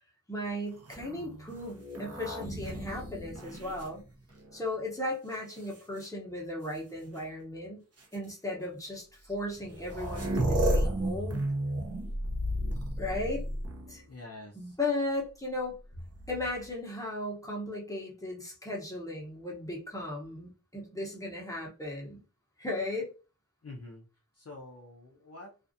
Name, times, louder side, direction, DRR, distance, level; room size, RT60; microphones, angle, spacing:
voice 1, 0.3-4.1 4.5-7.8 8.1-11.4 13.0-13.4 13.9-14.0 14.5-15.8 16.3-22.2 22.6-23.1, left 1 dB, 10° left, -2 dB, 0.9 m, -36 dB
sound 1, 0.8-4.6 5.3-6.1 7.2-7.3 8.0-8.2 9.3-9.4 9.6-14.1 16.0-16.7, right 1 dB, 45° right, 0.7 m, -33 dB
voice 2, 14.0-14.8 23.6-24.0 24.3-25.5, left 2 dB, 50° left, -2 dB, 0.6 m, -47 dB
2.4 x 2.4 x 2.6 m, 0.33 s
wide cardioid pair, 40°, 33 cm